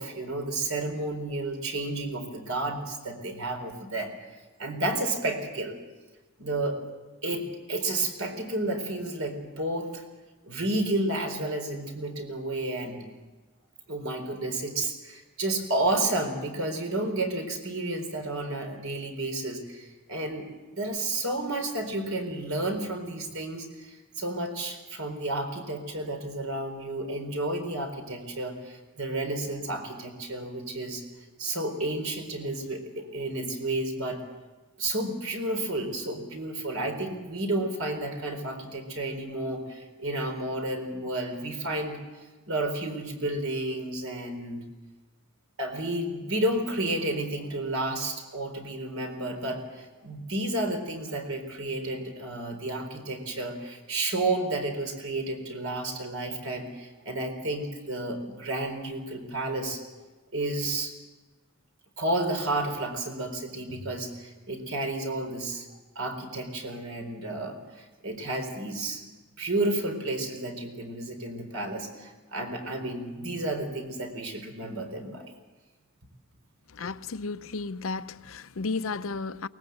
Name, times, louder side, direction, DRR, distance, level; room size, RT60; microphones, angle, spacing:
voice 1, 0.0-4.1 4.6-5.7 6.4-6.8 7.2-10.0 10.4-13.0 13.9-31.0 31.4-34.2 34.8-44.6 45.6-59.8 60.3-60.9 62.0-65.7 66.0-69.0 69.4-75.3, right 2 dB, 70° right, 4.2 m, -31 dB
voice 2, 76.7-79.5, left 4 dB, 70° left, 0.6 m, -33 dB
23.5 x 19.0 x 8.0 m
head